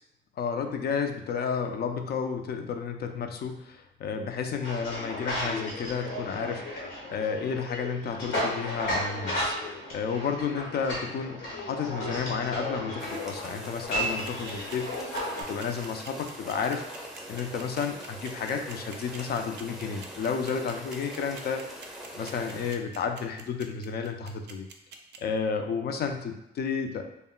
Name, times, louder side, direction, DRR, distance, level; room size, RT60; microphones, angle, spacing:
voice 1, 0.4-15.1 15.4-21.6 22.2-24.7 25.2-27.0, left 6 dB, 55° left, 5 dB, 0.4 m, -32 dB
sound 1, 4.6-15.4, equal, 85° left, 1.0 m, -34 dB
sound 2, 13.0-22.7, equal, 5° right, 0.5 m, -43 dB
sound 3, 14.0-25.2, right 6 dB, 60° right, 0.4 m, -46 dB
2.1 x 2.1 x 3.7 m, 0.86 s
cardioid pair, 90°, 20 cm